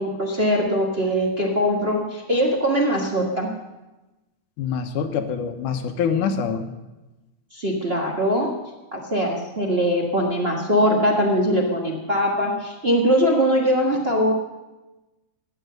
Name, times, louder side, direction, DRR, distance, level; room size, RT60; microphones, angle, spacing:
voice 1, 0.0-3.5 7.5-8.5 8.9-14.3, equal, 50° right, -2 dB, 0.7 m, -21 dB
voice 2, 4.6-6.6, left 6 dB, 75° left, 7 dB, 2.4 m, -25 dB
14.5 x 10.0 x 6.6 m, 1.1 s
omnidirectional pair, 3.7 m